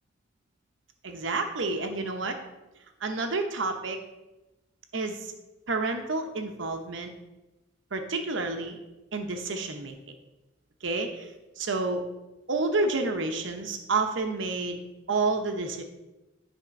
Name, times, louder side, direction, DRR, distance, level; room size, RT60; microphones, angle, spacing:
voice 1, 1.0-2.4 3.0-4.0 4.9-5.3 5.7-7.1 7.9-8.8 9.1-10.0 10.8-11.1 11.6-12.0 12.5-15.8, right 3 dB, 85° right, 5 dB, 0.9 m, -29 dB
10.0 x 3.6 x 5.3 m, 1.0 s
head